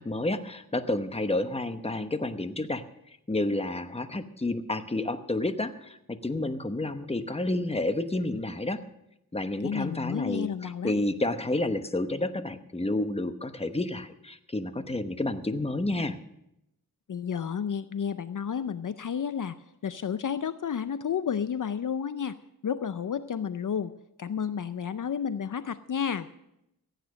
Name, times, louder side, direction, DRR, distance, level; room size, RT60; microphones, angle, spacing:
voice 1, 0.0-2.8 3.3-8.8 9.3-16.2, left 2 dB, 15° left, 10 dB, 0.9 m, -30 dB
voice 2, 9.6-10.9 17.1-19.6 19.8-22.3 22.6-23.9 24.2-26.3, left 7 dB, 60° left, 13 dB, 0.5 m, -31 dB
15.5 x 9.2 x 6.4 m, 0.83 s
wide cardioid pair, 70°, 36 cm